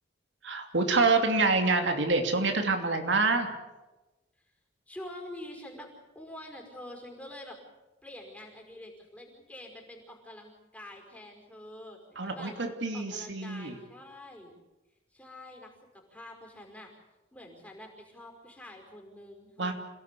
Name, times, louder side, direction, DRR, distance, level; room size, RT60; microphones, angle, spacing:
voice 1, 0.4-3.6 12.2-13.7 19.6-19.7, right 3 dB, 80° right, 5 dB, 2.7 m, -26 dB
voice 2, 4.9-5.9 6.2-7.6 8.0-12.5 12.9-14.6 15.1-16.9 17.3-19.7, left 1 dB, 10° left, 1 dB, 5.2 m, -46 dB
28.0 x 17.5 x 8.4 m, 1.1 s
head